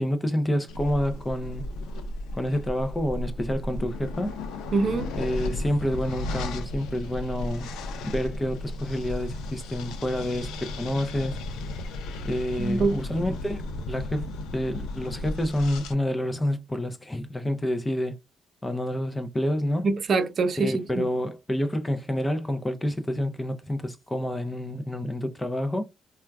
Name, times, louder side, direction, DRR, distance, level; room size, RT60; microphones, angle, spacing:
voice 1, 0.0-1.7 2.3-4.3 5.2-7.7 8.0-11.4 12.2-13.6 13.9-18.2 18.6-19.9 20.6-25.9, left 1 dB, 15° left, 0.5 m, -28 dB
sound 1, 0.7-15.9, left 2 dB, 90° left, 0.5 m, -34 dB
voice 2, 4.7-5.1 12.6-13.0 19.8-21.1, right 3 dB, 50° right, 0.7 m, -24 dB
4.2 x 2.3 x 2.2 m
cardioid pair, 90°, 0 cm